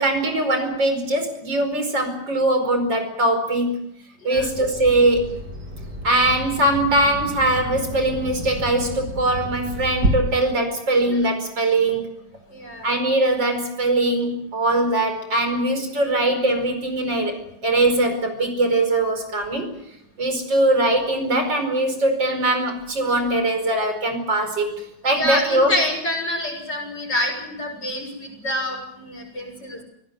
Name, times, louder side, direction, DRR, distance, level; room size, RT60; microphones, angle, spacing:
voice 1, 0.0-3.8 4.2-5.4 6.0-12.1 12.8-19.7 20.2-25.7, right 1 dB, 85° right, 7 dB, 5.7 m, -21 dB
Bird vocalization bird call bird song, 4.3-10.1, right 1 dB, 65° right, 4.0 m, -31 dB
voice 2, 12.5-13.0 25.1-29.8, left 1 dB, 70° left, 3 dB, 7.4 m, -27 dB
23.5 x 17.5 x 9.4 m, 0.75 s
omnidirectional pair, 1.9 m